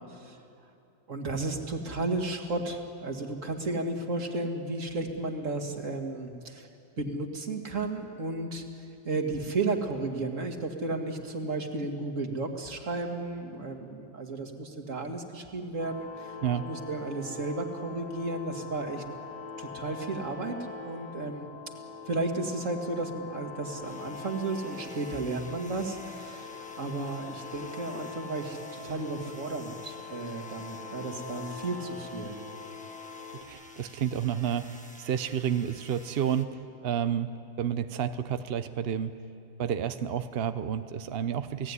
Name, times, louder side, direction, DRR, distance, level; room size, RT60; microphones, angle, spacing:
voice 1, 1.1-6.7 7.0-8.6 9.0-16.4 16.6-19.0 19.6-21.5 22.1-32.4, right 2 dB, 40° right, 4 dB, 2.3 m, -33 dB
sound 1, 15.8-33.4, left 5 dB, 60° left, 3.1 m, -43 dB
sound 2, 23.8-36.4, equal, 5° left, 1.4 m, -52 dB
voice 2, 33.5-37.3 37.6-39.1 39.6-41.7, right 9 dB, 60° right, 10 dB, 0.6 m, -30 dB
29.5 x 18.0 x 9.8 m, 2.7 s
omnidirectional pair, 2.0 m